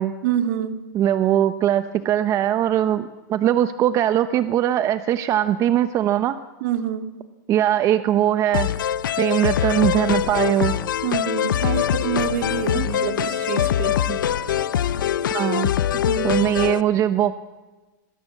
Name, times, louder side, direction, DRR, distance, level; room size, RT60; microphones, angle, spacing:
voice 1, 0.2-0.9 6.6-7.2 11.0-14.0 15.9-16.4, right 9 dB, 60° right, 7 dB, 2.8 m, -27 dB
voice 2, 0.9-6.4 7.5-8.7 9.2-10.8 12.7-12.9 14.1-14.2 15.3-15.7 16.2-17.3, right 11 dB, 30° right, 11 dB, 1.0 m, -21 dB
sound 1, 8.5-16.8, left 10 dB, 90° left, 1.0 m, -23 dB
sound 2, 10.1-15.3, right 1 dB, 15° right, 4.9 m, -42 dB
28.5 x 22.5 x 7.5 m, 1.2 s
supercardioid pair, 140°, 10 cm